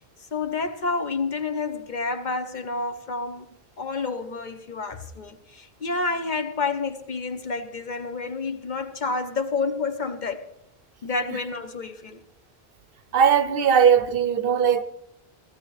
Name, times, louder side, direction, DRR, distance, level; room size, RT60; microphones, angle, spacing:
voice 1, 0.3-3.5 3.8-10.4 11.0-12.2, left 4 dB, 50° left, 0.9 m, -29 dB
voice 2, 13.1-14.8, right 7 dB, 65° right, 0.8 m, -19 dB
17.5 x 13.5 x 3.2 m
omnidirectional pair, 1.0 m